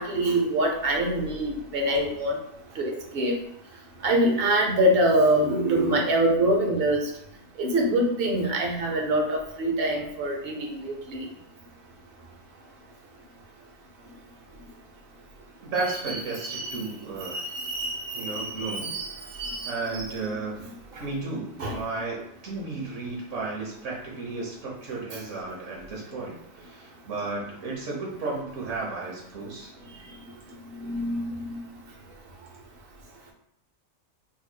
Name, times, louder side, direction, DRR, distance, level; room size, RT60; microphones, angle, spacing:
voice 1, 0.0-2.4 2.8-3.3 4.0-7.1 7.6-11.3 16.1-16.8 17.2-19.1 19.4-20.4 21.6-21.8 30.7-31.6, right 1 dB, 55° right, 1 dB, 0.8 m, -25 dB
voice 2, 15.6-17.4 18.1-18.9 19.3-19.4 19.6-20.6 21.0-29.7, right 3 dB, 75° right, -4 dB, 1.4 m, -33 dB
4.0 x 3.0 x 2.2 m, 0.74 s
omnidirectional pair, 1.3 m